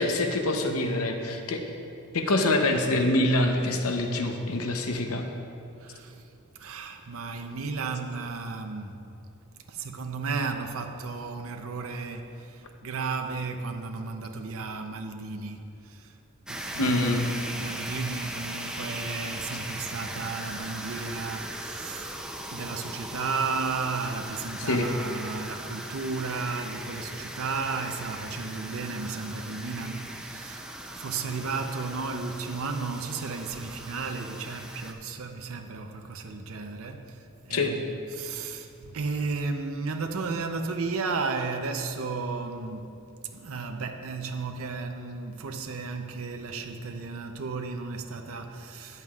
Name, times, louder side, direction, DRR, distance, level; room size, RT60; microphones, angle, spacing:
voice 1, 0.0-1.6 2.1-5.2 16.8-17.4 24.7-24.9 37.5-37.8, left 2 dB, 70° left, 0.8 m, -25 dB
voice 2, 5.8-6.3 6.5-9.0 9.7-16.2 16.5-22.2 22.5-42.9 43.3-49.0, right 4 dB, 65° right, 0.6 m, -34 dB
sound 1, 16.5-34.9, right 1 dB, 5° right, 0.4 m, -39 dB
13.5 x 9.1 x 2.4 m
head